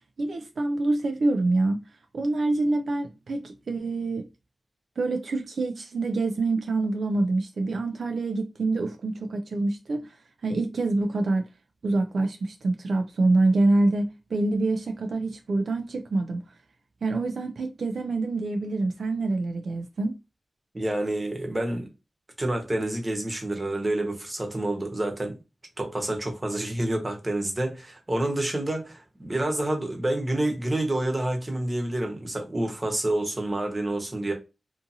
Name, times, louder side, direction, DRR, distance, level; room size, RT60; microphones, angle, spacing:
voice 1, 0.2-1.8 2.1-4.3 5.0-10.1 10.4-11.5 11.8-16.4 17.0-20.1, right 2 dB, 80° right, 0.3 m, -26 dB
voice 2, 20.7-21.9 22.4-25.3 25.8-34.3, right 1 dB, 30° right, 0.9 m, -28 dB
2.7 x 2.5 x 2.6 m
wide cardioid pair, 65°, 0 cm